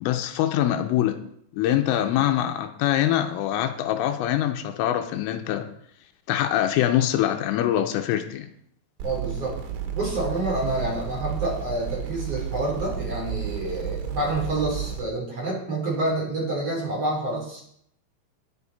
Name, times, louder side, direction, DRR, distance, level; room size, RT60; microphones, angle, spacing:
voice 1, 0.0-1.2 1.5-5.7 6.3-8.5, left 12 dB, 90° left, 7 dB, 3.4 m, -24 dB
voice 2, 9.0-9.5 9.9-17.6, right 2 dB, 30° right, -3 dB, 4.1 m, -28 dB
sound 1, 9.0-15.0, right 8 dB, 80° right, 4.0 m, -32 dB
19.5 x 7.3 x 4.3 m, 0.69 s
omnidirectional pair, 5.8 m